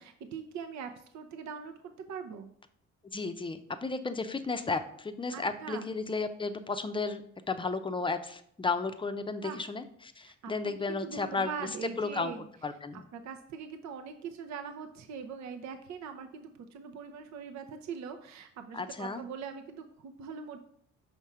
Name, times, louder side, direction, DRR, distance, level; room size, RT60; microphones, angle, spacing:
voice 1, 0.0-1.7 2.1-2.5 5.3-5.9 9.4-9.6 10.2-12.5 13.1-20.6, right 6 dB, 65° right, 6 dB, 0.7 m, -42 dB
voice 2, 3.0-7.2 7.5-11.5 11.8-12.3 12.6-13.0 18.7-19.2, left 4 dB, 15° left, 9 dB, 0.6 m, -33 dB
5.8 x 3.5 x 5.6 m, 0.66 s
cardioid pair, 90°, 30 cm